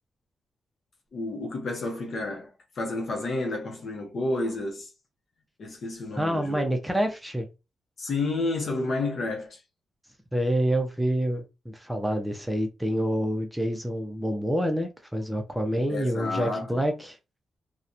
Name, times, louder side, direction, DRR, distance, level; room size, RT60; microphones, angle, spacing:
voice 1, 1.1-4.9 5.6-6.6 8.0-9.6 15.9-16.8, left 2 dB, 55° left, 0.8 m, -30 dB
voice 2, 6.2-7.5 10.3-17.2, equal, 5° right, 0.5 m, -27 dB
2.8 x 2.1 x 2.4 m
cardioid pair, 110°, 0 cm